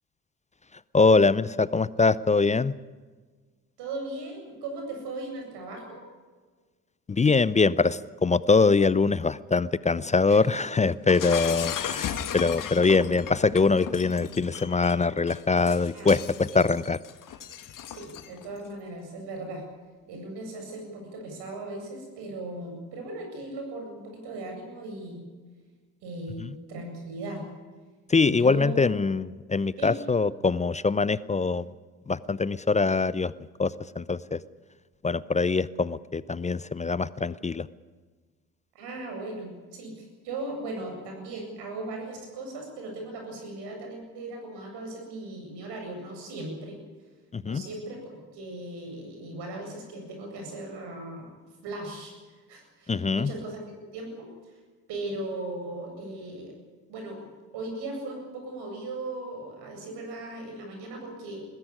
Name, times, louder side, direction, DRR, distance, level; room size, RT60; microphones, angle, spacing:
voice 1, 0.9-2.7 7.1-17.0 26.4-26.6 28.1-31.7 32.1-33.3 33.6-34.4 35.0-37.7 47.3-47.6 52.9-53.3, left 4 dB, 15° left, 19 dB, 0.6 m, -23 dB
voice 2, 3.8-6.0 10.3-10.4 15.9-16.1 16.5-16.6 17.9-19.6 20.1-25.2 26.0-27.4 28.3-29.1 29.8-30.0 38.7-46.8 47.4-51.3 51.6-52.1 52.5-53.6 53.9-54.3 54.9-56.5 56.9-57.2 57.5-61.4, right 2 dB, 65° right, 3 dB, 7.9 m, -38 dB
Shatter, 11.1-18.5, left 9 dB, 45° left, 1.7 m, -36 dB
21.0 x 15.5 x 9.9 m, 1.4 s
hypercardioid pair, 55°, 44 cm